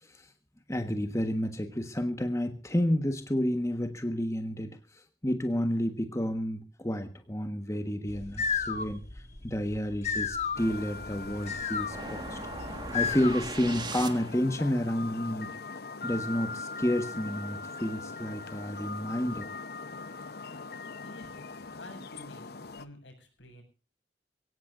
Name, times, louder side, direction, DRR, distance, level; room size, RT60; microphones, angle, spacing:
voice 1, 0.0-0.3 0.7-12.4 12.7-15.5 16.0-19.5, equal, 15° left, 7 dB, 1.4 m, -30 dB
sound 1, 8.1-13.7, left 6 dB, 40° left, 1.5 m, -34 dB
sound 2, 10.5-22.8, left 4 dB, 60° left, 0.9 m, -41 dB
sound 3, 11.9-14.6, right 3 dB, 25° right, 1.7 m, -39 dB
voice 2, 21.0-23.6, left 1 dB, 85° left, 5 dB, 7.5 m, -50 dB
23.5 x 17.0 x 2.6 m, 0.36 s
head